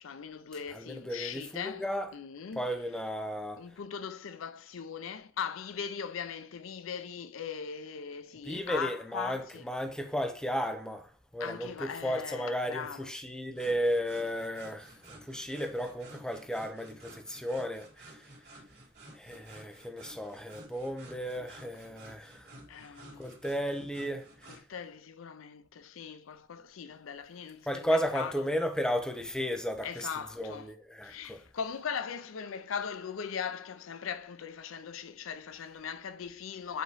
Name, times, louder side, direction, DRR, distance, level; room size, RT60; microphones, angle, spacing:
voice 1, 0.0-1.8 2.1-2.7 3.6-9.7 11.4-13.1 22.7-23.3 24.5-28.3 29.8-30.7 31.0-36.8, left 7 dB, 80° left, 0.5 m, -39 dB
voice 2, 0.7-2.1 2.6-3.6 8.4-11.1 11.3-18.0 19.1-22.5 23.2-24.3 27.7-30.1 30.3-31.4, equal, 5° left, 0.7 m, -34 dB
sound 1, 13.5-24.6, right 2 dB, 50° right, 2.4 m, -53 dB
8.1 x 3.0 x 4.7 m
head